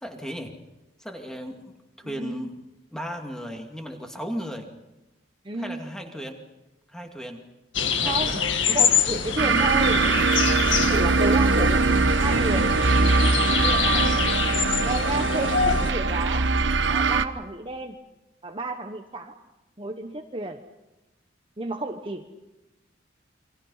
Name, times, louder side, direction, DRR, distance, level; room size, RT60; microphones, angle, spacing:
voice 1, 0.0-0.5 1.0-1.7 2.0-2.6 2.9-4.7 5.6-6.3 6.9-7.4 7.8-8.3, equal, 5° left, 3 dB, 2.5 m, -35 dB
voice 2, 2.0-2.4 5.4-5.8 8.0-10.0 10.8-11.8 12.1-12.7 13.5-14.2 14.8-16.5 16.9-18.0 18.4-19.3 19.8-20.6 21.6-22.2, right 2 dB, 25° right, 5 dB, 1.2 m, -31 dB
sound 1, 7.7-15.9, left 7 dB, 75° left, 1.8 m, -26 dB
sound 2, 9.4-17.2, right 4 dB, 70° right, 1.0 m, -22 dB
29.0 x 24.0 x 5.7 m, 1.0 s
head